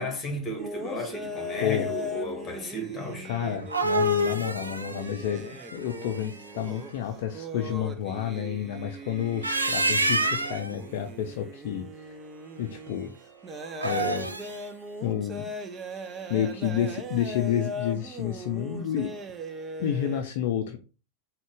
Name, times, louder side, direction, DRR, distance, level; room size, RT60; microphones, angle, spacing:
voice 1, 0.0-3.3, left 1 dB, 20° left, 1.2 m, -34 dB
sound 1, 0.6-20.2, equal, 20° right, 0.4 m, -39 dB
voice 2, 3.2-12.2 12.6-13.1 13.8-14.3 15.0-15.5 16.3-19.1 19.8-20.8, left 9 dB, 50° left, 0.4 m, -30 dB
sound 2, 3.4-6.5 9.2-10.7 13.7-14.6, right 1 dB, 80° right, 0.4 m, -27 dB
3.7 x 2.2 x 3.7 m
figure-of-eight pair, 90°, 0 cm